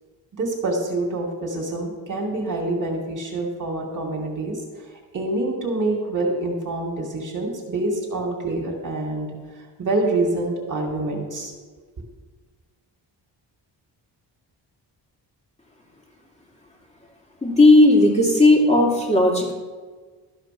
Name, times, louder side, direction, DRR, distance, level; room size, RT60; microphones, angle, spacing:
voice 1, 0.3-9.3 9.8-11.5, right 2 dB, 45° right, -1 dB, 2.4 m, -26 dB
voice 2, 17.4-19.5, left 2 dB, 15° left, -1 dB, 2.5 m, -15 dB
13.0 x 5.1 x 5.9 m, 1.4 s
cardioid pair, 95°, 45 cm